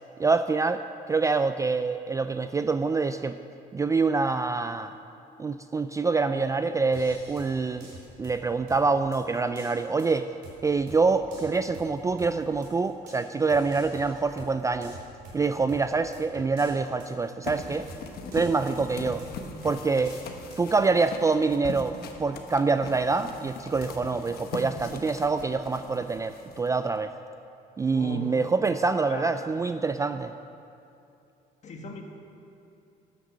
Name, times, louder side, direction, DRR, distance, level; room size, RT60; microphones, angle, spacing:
voice 1, 0.2-3.4 3.7-4.9 5.4-7.9 8.2-10.3 10.6-15.0 15.3-17.9 18.3-19.2 19.6-20.2 20.6-21.9 22.2-27.1 27.8-30.3, right 4 dB, 20° right, 10 dB, 0.3 m, -26 dB
sound 1, 6.9-20.7, right 1 dB, 80° right, 3.6 m, -48 dB
sound 2, 17.5-27.0, left 4 dB, 65° left, 1.2 m, -41 dB
voice 2, 27.9-28.4 29.1-29.3 31.6-32.0, left 2 dB, 45° left, 2 dB, 1.8 m, -38 dB
13.0 x 9.3 x 6.4 m, 2.7 s
cardioid pair, 110°, 17 cm